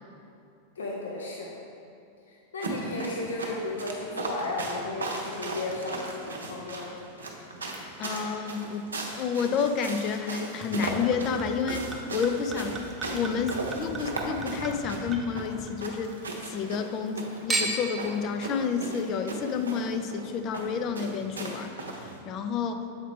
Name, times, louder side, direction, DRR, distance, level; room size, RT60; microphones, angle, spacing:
voice 1, 0.8-1.5 2.3-7.0, left 2 dB, 70° left, -2 dB, 0.7 m, -34 dB
sound 1, 2.6-22.2, right 2 dB, 70° right, 0.7 m, -37 dB
voice 2, 8.0-8.9 9.1-12.8 13.1-16.2 16.5-22.8, left 6 dB, 35° left, 7 dB, 0.4 m, -30 dB
Chink clink / Liquid, 10.6-16.1 16.5-17.1 17.5-18.0 18.7-18.8, right 2 dB, 10° right, 0.7 m, -36 dB
7.2 x 4.6 x 3.7 m, 2.6 s
figure-of-eight pair, 90°, 0 cm